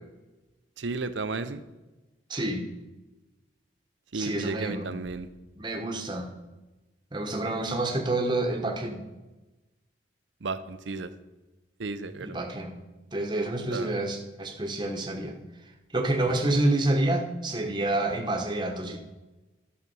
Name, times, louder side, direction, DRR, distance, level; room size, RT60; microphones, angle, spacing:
voice 1, 0.8-1.6 4.1-5.3 10.4-11.1 11.8-12.3 13.7-13.9, right 3 dB, 80° right, 12 dB, 0.7 m, -33 dB
voice 2, 2.3-2.6 4.1-4.9 5.6-6.3 7.1-9.0 12.2-12.7 13.1-15.3 15.9-19.0, right 2 dB, 25° right, 3 dB, 1.1 m, -28 dB
12.5 x 6.1 x 5.4 m, 1.1 s
head